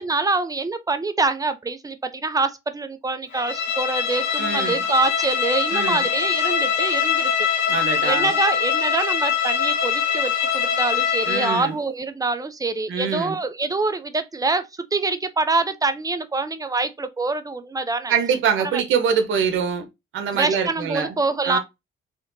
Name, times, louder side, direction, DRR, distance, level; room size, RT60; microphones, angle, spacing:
voice 1, 0.0-7.5 8.0-18.1 18.7-18.8 20.3-21.6, right 3 dB, 20° right, 0.6 m, -25 dB
Bowed string instrument, 3.3-11.7, left 7 dB, 80° left, 1.4 m, -23 dB
voice 2, 4.4-4.8 5.7-6.1 7.7-8.3 11.3-11.8 12.9-13.3 18.1-19.8 20.1-21.1 21.4-21.6, right 6 dB, 80° right, 1.1 m, -24 dB
4.2 x 2.9 x 2.7 m
cardioid pair, 90°, 20 cm